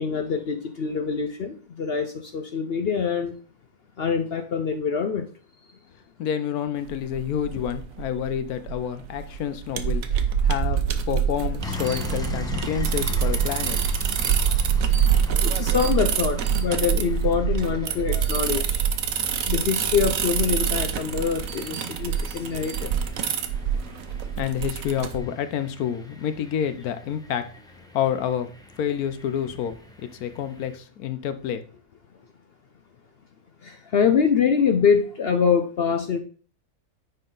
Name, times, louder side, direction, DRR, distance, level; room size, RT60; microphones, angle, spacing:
voice 1, 0.0-3.3 4.0-5.3 15.4-18.9 19.5-22.9 33.6-36.2, left 6 dB, 55° left, 7 dB, 0.7 m, -24 dB
voice 2, 6.2-10.0 10.4-10.8 11.1-13.8 24.4-27.4 27.9-28.5 28.8-31.6, left 9 dB, 75° left, 11 dB, 1.2 m, -28 dB
sound 1, 6.9-25.2, right 7 dB, 65° right, 1.1 m, -25 dB
sound 2, 11.6-30.8, left 2 dB, 5° left, 0.8 m, -40 dB
9.6 x 4.5 x 3.9 m, 0.42 s
omnidirectional pair, 1.6 m